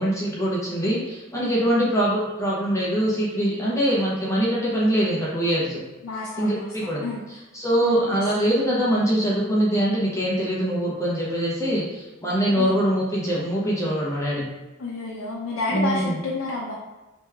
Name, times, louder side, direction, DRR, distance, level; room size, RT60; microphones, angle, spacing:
voice 1, 0.0-5.8 6.4-14.5 15.7-16.2, equal, 15° left, -6 dB, 0.8 m, -23 dB
voice 2, 6.0-7.2 7.8-8.2 12.5-12.7 14.8-16.8, left 3 dB, 90° left, -5 dB, 0.5 m, -30 dB
3.3 x 3.1 x 3.4 m, 1.1 s
head